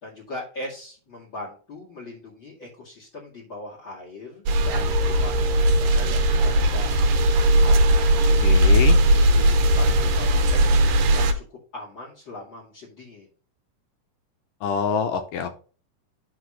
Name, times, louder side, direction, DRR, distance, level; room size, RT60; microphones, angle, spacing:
voice 1, 0.0-7.0 7.6-8.5 9.2-10.7 11.1-13.3, left 2 dB, 35° left, -2 dB, 2.6 m, -40 dB
sound 1, 4.5-11.3, right 1 dB, 85° right, 2.8 m, -18 dB
voice 2, 8.4-9.0 14.6-15.6, left 6 dB, 75° left, 6 dB, 2.3 m, -26 dB
9.9 x 3.5 x 5.7 m, 0.39 s
omnidirectional pair, 4.0 m